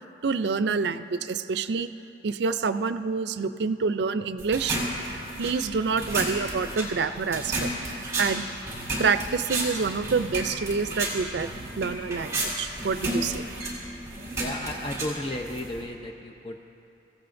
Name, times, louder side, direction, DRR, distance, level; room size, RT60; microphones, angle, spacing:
voice 1, 0.2-1.9 2.2-4.8 5.4-7.7 8.2-8.5 9.0-11.5 11.8-13.4, right 5 dB, 75° right, 12 dB, 0.4 m, -27 dB
sound 1, 4.4-15.8, right 1 dB, 20° right, 3.7 m, -32 dB
voice 2, 14.3-16.6, left 1 dB, 30° left, 2 dB, 0.6 m, -34 dB
25.5 x 16.0 x 2.6 m, 2.8 s
head